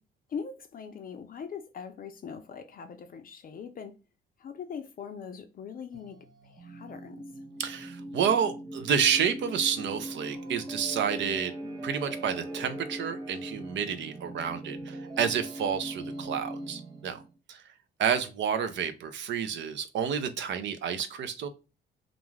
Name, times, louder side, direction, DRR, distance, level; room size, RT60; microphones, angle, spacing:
voice 1, 0.3-4.0 4.4-6.2 6.4-7.2, left 6 dB, 45° left, 0.4 m, -41 dB
sound 1, 5.9-17.3, right 1 dB, 20° right, 0.5 m, -40 dB
voice 2, 7.6-11.5 11.8-17.2 17.5-17.6 18.0-21.5, right 7 dB, 65° right, 0.5 m, -29 dB
2.5 x 2.2 x 3.1 m
cardioid pair, 90°, 20 cm